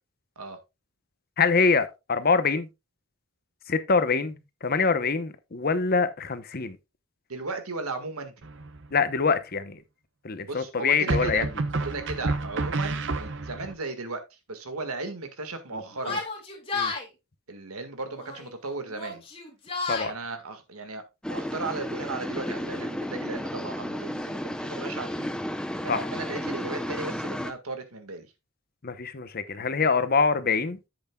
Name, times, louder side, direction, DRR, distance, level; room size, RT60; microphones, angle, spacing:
voice 1, 1.4-2.7 3.7-6.8 8.9-9.8 10.2-11.5 15.7-15.8 16.1-16.2 16.7-16.9 19.9-20.1 25.9-26.1 28.8-30.8, left 5 dB, 45° left, 0.8 m, -25 dB
voice 2, 7.3-8.3 10.5-11.4 11.8-14.2 14.5-16.2 17.5-19.2 20.0-21.0 21.3-25.4 25.8-28.3, right 3 dB, 90° right, 1.7 m, -36 dB
sound 1, 8.4-9.0 11.1-13.7, right 3 dB, 60° right, 0.9 m, -29 dB
Yell, 16.0-17.0 18.1-18.5 18.9-20.1, left 4 dB, 25° left, 2.4 m, -32 dB
sound 2, 21.2-27.5, equal, 5° left, 0.6 m, -33 dB
10.5 x 7.9 x 2.3 m
head